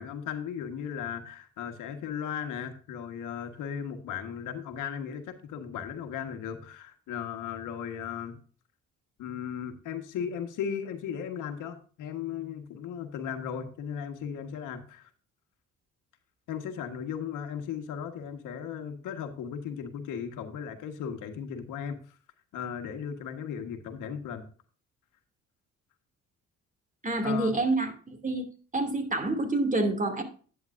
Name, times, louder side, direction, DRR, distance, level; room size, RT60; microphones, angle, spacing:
voice 1, 0.0-8.4 9.2-15.1 16.5-22.0 22.5-24.4 27.2-27.5, left 8 dB, 90° left, 7 dB, 1.5 m, -36 dB
voice 2, 27.0-28.5 28.7-30.2, right 2 dB, 25° right, 7 dB, 2.6 m, -27 dB
11.0 x 9.1 x 2.6 m, 0.40 s
cardioid pair, 90°, 30 cm